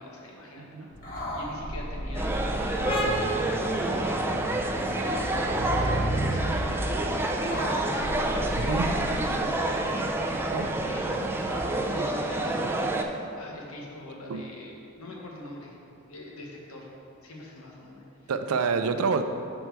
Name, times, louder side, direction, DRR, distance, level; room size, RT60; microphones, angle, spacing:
voice 1, 0.0-6.0 6.2-11.1 11.9-15.7 16.0-16.9 17.2-18.3, left 1 dB, 80° left, -2 dB, 1.2 m, -43 dB
voice 2, 0.6-0.9 8.5-8.9 10.5-10.7 14.3-14.4 18.3-19.2, right 5 dB, 85° right, 8 dB, 0.4 m, -27 dB
sound 1, 0.9-11.6, equal, 40° left, 1.3 m, -34 dB
sound 2, 2.1-13.0, right 2 dB, 10° right, 0.4 m, -28 dB
sound 3, 2.8-10.1, right 1 dB, 25° left, 0.6 m, -37 dB
6.7 x 4.4 x 4.5 m, 2.6 s
head